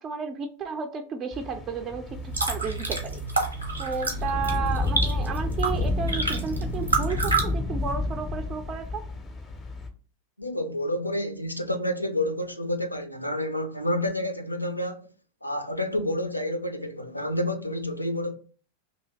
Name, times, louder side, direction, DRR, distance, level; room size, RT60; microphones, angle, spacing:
voice 1, 0.0-2.0 2.4-3.2 3.8-9.0, right 6 dB, 30° right, 0.4 m, -32 dB
sound 1, 1.3-9.9, left 3 dB, 20° left, 0.5 m, -31 dB
sound 2, 2.1-7.4, right 3 dB, 80° right, 0.7 m, -29 dB
voice 2, 10.4-15.1 15.4-18.3, left 1 dB, 85° left, 0.4 m, -29 dB
2.7 x 2.7 x 3.0 m
figure-of-eight pair, 90°, 0 cm